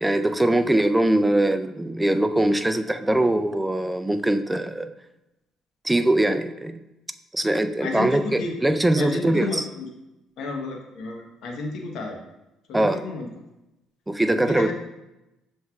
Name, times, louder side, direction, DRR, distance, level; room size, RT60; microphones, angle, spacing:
voice 1, 0.0-4.9 5.8-6.8 7.3-9.7 12.7-13.0 14.1-14.7, right 1 dB, 10° right, 9 dB, 0.3 m, -22 dB
voice 2, 7.8-8.5 9.0-9.9 10.4-12.2 12.7-13.3 14.3-14.7, left 2 dB, 70° left, 2 dB, 0.9 m, -31 dB
7.1 x 3.2 x 2.3 m, 0.95 s
cardioid pair, 85°, 0 cm